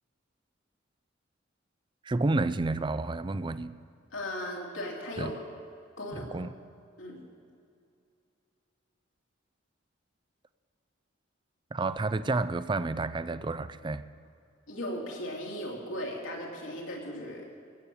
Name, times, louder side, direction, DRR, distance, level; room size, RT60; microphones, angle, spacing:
voice 1, 2.0-3.7 5.2-5.3 6.1-6.5 11.7-14.0, right 3 dB, 25° right, 14 dB, 0.4 m, -30 dB
voice 2, 4.1-5.4 6.0-6.4 7.0-7.2 14.7-17.5, left 1 dB, 85° left, -2 dB, 3.1 m, -37 dB
16.0 x 8.5 x 7.1 m, 2.5 s
head